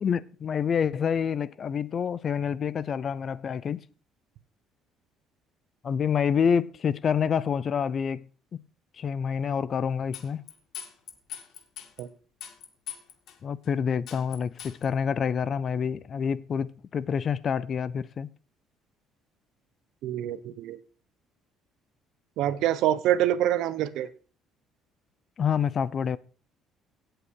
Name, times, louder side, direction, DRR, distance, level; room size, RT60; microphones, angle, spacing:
voice 1, 0.0-3.8 5.8-8.3 9.0-10.4 13.4-18.3 25.4-26.2, left 7 dB, 40° left, 0.6 m, -27 dB
sound 1, 10.1-12.0 12.4-13.4 13.6-13.7 14.1-14.9, left 10 dB, 65° left, 2.0 m, -41 dB
voice 2, 20.0-20.8 22.4-24.1, right 12 dB, 75° right, 1.0 m, -26 dB
17.0 x 8.0 x 4.7 m
cardioid pair, 125°, 0 cm